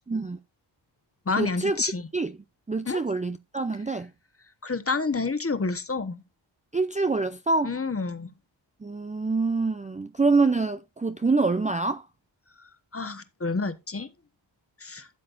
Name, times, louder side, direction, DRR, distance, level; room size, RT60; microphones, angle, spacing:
voice 1, 0.1-0.4 1.4-1.8 2.1-2.3 2.7-4.1 6.7-7.8 8.8-12.0, right 3 dB, 15° right, 0.5 m, -25 dB
voice 2, 1.3-2.1 2.9-3.0 4.6-6.2 7.6-8.3 12.9-14.1 14.8-15.1, left 4 dB, 30° left, 1.3 m, -29 dB
12.5 x 7.5 x 2.6 m
wide cardioid pair, 95°, 48 cm